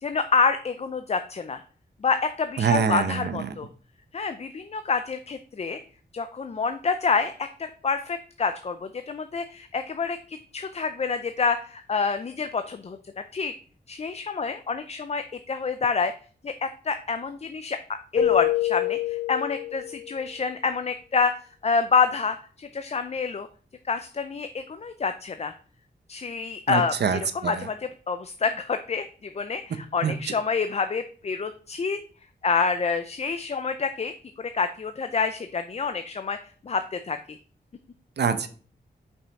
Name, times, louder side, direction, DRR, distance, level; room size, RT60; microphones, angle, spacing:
voice 1, 0.0-1.6 2.0-3.7 4.1-5.8 6.1-7.5 7.8-13.0 13.3-13.5 13.9-16.1 16.4-17.8 18.1-21.3 21.6-23.5 23.9-25.5 26.1-26.9 27.3-29.1 29.3-32.0 32.4-36.4 36.6-37.2, left 5 dB, 35° left, 9 dB, 0.5 m, -27 dB
voice 2, 2.6-3.4 26.7-27.6 30.0-30.1 38.2-38.5, right 6 dB, 70° right, 10 dB, 0.8 m, -25 dB
Keyboard (musical), 18.2-20.2, left 12 dB, 85° left, 0.9 m, -26 dB
5.6 x 5.5 x 4.1 m, 0.42 s
wide cardioid pair, 110°, 18 cm